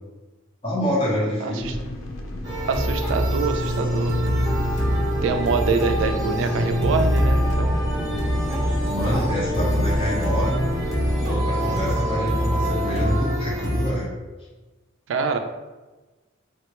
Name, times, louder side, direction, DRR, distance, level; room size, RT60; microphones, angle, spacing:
voice 1, 0.6-1.8 4.5-4.6 7.9-8.1 8.8-10.7 11.2-14.1, equal, 25° left, -5 dB, 0.8 m, -27 dB
voice 2, 1.4-1.7 2.7-4.1 5.2-7.8 15.1-15.4, right 4 dB, 65° right, 6 dB, 0.3 m, -25 dB
sound 1, 1.6-11.3, left 1 dB, 70° left, 0.4 m, -34 dB
sound 2, 2.4-13.9, equal, 15° right, 0.6 m, -24 dB
sound 3, 3.7-13.1, left 1 dB, 55° left, 1.4 m, -36 dB
3.6 x 2.1 x 2.9 m, 1.2 s
head